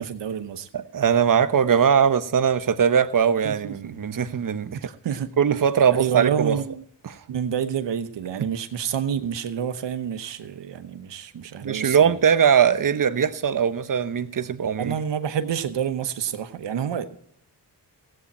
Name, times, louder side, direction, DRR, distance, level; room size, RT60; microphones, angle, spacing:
voice 1, 0.0-0.7 3.4-3.7 4.8-5.3 6.0-6.8 7.3-12.2 14.8-17.2, right 8 dB, 85° right, 1.0 m, -28 dB
voice 2, 0.7-4.8 5.4-6.6 7.0-7.2 11.3-14.9, right 7 dB, 50° right, 0.9 m, -21 dB
15.5 x 8.7 x 4.3 m
cardioid pair, 60°, 42 cm